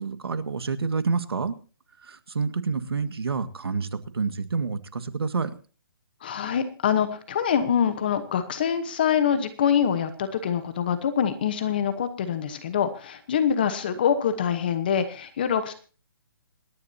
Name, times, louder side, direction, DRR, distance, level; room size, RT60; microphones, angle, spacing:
voice 1, 0.0-1.5 2.0-5.5, right 4 dB, 85° right, 11 dB, 1.8 m, -28 dB
voice 2, 6.2-15.7, left 8 dB, 25° left, 10 dB, 1.0 m, -25 dB
26.5 x 11.0 x 2.8 m, 0.38 s
hypercardioid pair, 180°, 13 cm